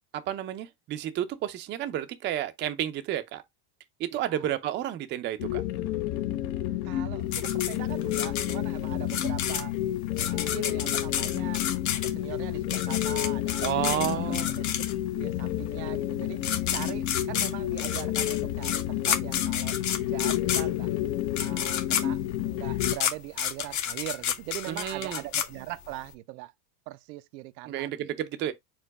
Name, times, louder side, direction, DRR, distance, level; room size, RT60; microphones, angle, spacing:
voice 1, 0.1-3.4 4.0-5.6 13.6-14.5 24.7-25.2 27.7-28.5, right 12 dB, 25° right, 0.4 m, -31 dB
voice 2, 4.1-4.5 6.9-9.7 10.3-11.6 11.9-13.7 14.0-14.7 15.1-16.4 16.7-20.9 21.4-26.5 26.9-28.1 28.4-28.5, right 18 dB, 85° right, 0.6 m, -41 dB
sound 1, 5.4-23.0, left 13 dB, 65° left, 0.8 m, -30 dB
sound 2, 7.3-15.2 16.1-16.2 16.4-26.1, left 9 dB, 35° left, 0.8 m, -31 dB
4.7 x 2.2 x 4.5 m
supercardioid pair, 120°, 49 cm